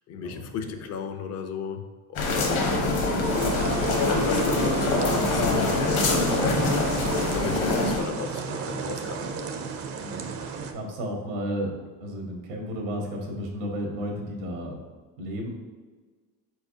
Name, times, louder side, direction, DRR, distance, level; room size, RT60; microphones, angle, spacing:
voice 1, 0.1-1.8 2.1-9.4, left 6 dB, 45° left, 6 dB, 0.5 m, -36 dB
sound 1, 2.2-8.0, left 2 dB, 65° left, 1.1 m, -24 dB
sound 2, 3.2-10.7, right 5 dB, 40° right, 0.5 m, -33 dB
voice 2, 10.0-10.3 10.7-11.7 12.0-14.8 15.2-15.5, equal, 85° right, 1 dB, 1.3 m, -33 dB
4.5 x 4.3 x 2.7 m, 1.4 s
cardioid pair, 135°, 39 cm